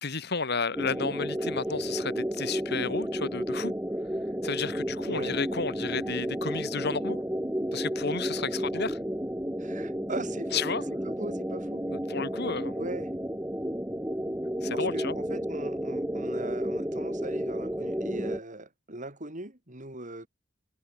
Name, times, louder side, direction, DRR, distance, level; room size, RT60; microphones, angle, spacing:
voice 1, 0.0-3.7 4.4-7.2 7.7-9.0 10.5-10.8 11.9-12.7 14.6-15.2, left 4 dB, 60° left, 2.3 m, -32 dB
sound 1, 0.7-18.4, equal, 10° right, 5.9 m, -32 dB
voice 2, 5.1-5.4 8.4-8.5 9.6-10.6 10.9-11.8 12.7-13.1 14.7-20.3, right 2 dB, 40° right, 7.2 m, -40 dB
head